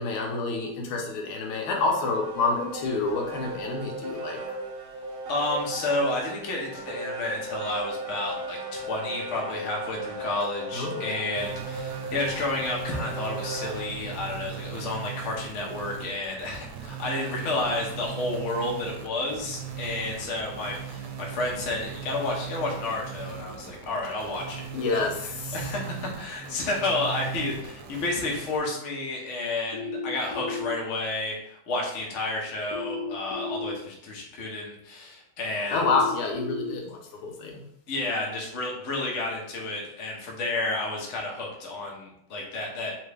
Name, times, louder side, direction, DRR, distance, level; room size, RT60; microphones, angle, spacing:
voice 1, 0.0-4.4 10.7-11.0 24.7-25.1 25.4-25.6 35.7-37.6, left 3 dB, 85° left, 1 dB, 1.7 m, -28 dB
sound 1, 1.4-14.0, right 1 dB, 55° right, 1.0 m, -37 dB
voice 2, 5.3-24.6 24.9-35.9 37.9-42.9, left 2 dB, 50° left, -2 dB, 1.0 m, -31 dB
sound 2, 11.4-28.6, right 8 dB, 75° right, 1.3 m, -39 dB
sound 3, 29.7-30.7 32.7-33.7 35.7-36.7, left 4 dB, 65° left, 1.2 m, -33 dB
3.7 x 3.3 x 3.3 m, 0.75 s
omnidirectional pair, 2.3 m